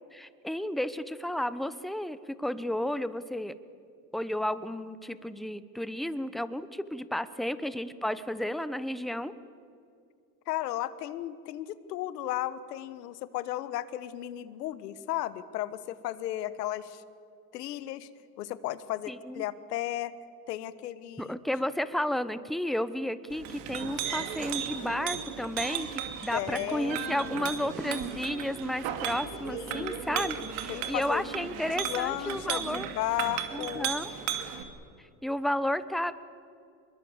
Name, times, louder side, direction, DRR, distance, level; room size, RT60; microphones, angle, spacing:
voice 1, 0.1-3.6 4.1-9.3 19.1-19.4 21.2-32.9 33.5-34.1 35.0-36.1, left 1 dB, ahead, 13 dB, 1.0 m, -32 dB
voice 2, 10.5-17.0 17.5-18.1 18.4-20.1 20.5-21.3 26.3-27.5 29.5-30.0 30.7-31.5 31.7-33.9, left 13 dB, 90° left, 15 dB, 1.2 m, -34 dB
Chink clink, 23.3-34.6, right 9 dB, 70° right, 2.5 m, -35 dB
25.0 x 22.0 x 7.2 m, 2.4 s
supercardioid pair, 90°, 47 cm